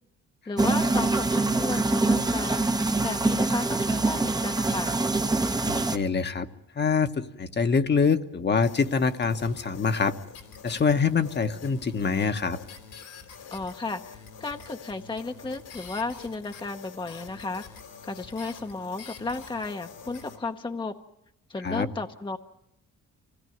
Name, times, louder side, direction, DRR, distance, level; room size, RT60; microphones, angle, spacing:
voice 1, 0.5-2.7 3.0-5.0 13.5-17.6 18.0-20.9 21.5-22.4, left 3 dB, 15° left, 5 dB, 0.9 m, -33 dB
sound 1, 0.6-6.0, right 3 dB, 15° right, 0.9 m, -24 dB
voice 2, 5.6-6.5 6.8-10.1 10.6-12.6 21.6-21.9, left 5 dB, 35° left, 8 dB, 1.2 m, -25 dB
sound 2, 8.6-20.4, left 6 dB, 85° left, 3.5 m, -46 dB
25.0 x 17.5 x 9.3 m, 0.85 s
cardioid pair, 90°, 30 cm